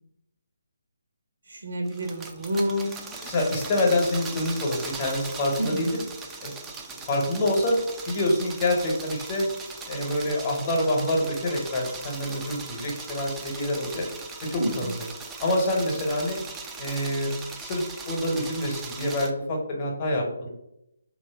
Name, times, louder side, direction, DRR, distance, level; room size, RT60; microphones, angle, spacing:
voice 1, 1.5-2.9 5.6-5.9 14.6-14.9, equal, 70° right, 2 dB, 0.8 m, -29 dB
sound 1, 1.9-19.3, right 4 dB, 10° right, 0.3 m, -39 dB
voice 2, 3.2-5.9 6.4-6.5 7.1-7.8 8.1-9.5 9.9-14.0 14.5-14.9 15.4-16.4 16.8-17.3 17.6-20.5, left 1 dB, 30° left, 0 dB, 0.9 m, -26 dB
3.0 x 2.6 x 3.3 m, 0.84 s
figure-of-eight pair, 150°, 0 cm